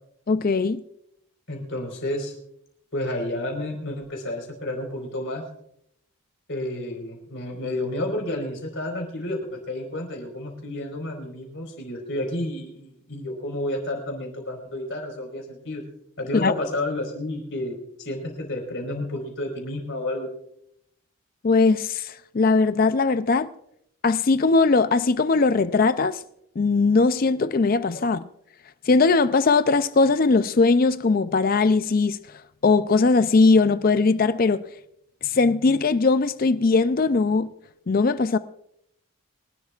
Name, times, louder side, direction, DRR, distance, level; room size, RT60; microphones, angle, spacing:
voice 1, 0.3-0.8 16.3-16.5 21.4-23.5 24.0-26.2 26.6-28.2 28.9-32.2 32.6-34.6 35.2-37.5 37.9-38.4, left 4 dB, 40° left, 0.4 m, -20 dB
voice 2, 1.5-2.3 2.9-5.4 6.5-15.8 16.2-20.3 27.9-28.0, left 1 dB, 55° left, 4.6 m, -31 dB
24.5 x 12.0 x 2.4 m
head